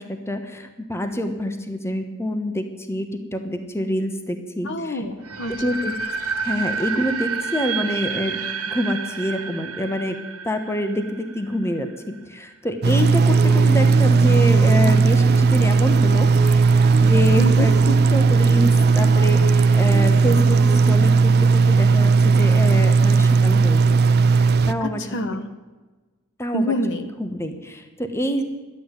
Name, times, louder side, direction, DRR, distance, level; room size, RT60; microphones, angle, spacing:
voice 1, 0.0-5.0 5.5-5.9 6.4-8.4 8.7-10.2 10.4-16.3 16.7-24.0 24.3-25.2 26.4-26.8 27.2-28.4, equal, 10° left, 6 dB, 1.1 m, -26 dB
voice 2, 4.6-5.8 17.4-17.7 24.8-25.5 26.5-27.1, left 1 dB, 55° left, 9 dB, 1.1 m, -27 dB
sound 1, 5.2-12.1, right 5 dB, 80° right, 1.7 m, -29 dB
sound 2, 12.8-24.7, right 4 dB, 50° right, 0.5 m, -16 dB
sound 3, 13.2-21.2, right 2 dB, 35° right, 1.0 m, -32 dB
11.5 x 8.6 x 9.3 m, 1.3 s
head